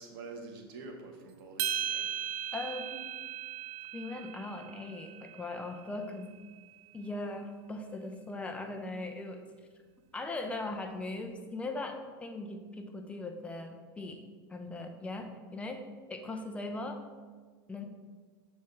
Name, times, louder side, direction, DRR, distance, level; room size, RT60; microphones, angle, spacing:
voice 1, 0.0-2.1, right 3 dB, 70° right, 2 dB, 1.2 m, -46 dB
sound 1, 1.6-6.0, right 10 dB, 45° right, 0.5 m, -37 dB
voice 2, 2.5-3.0 3.9-6.4 6.9-9.4 10.1-14.2 14.5-17.0 17.7-17.8, left 2 dB, 10° left, 4 dB, 0.6 m, -39 dB
6.5 x 3.4 x 5.8 m, 1.5 s
supercardioid pair, 130°, 13 cm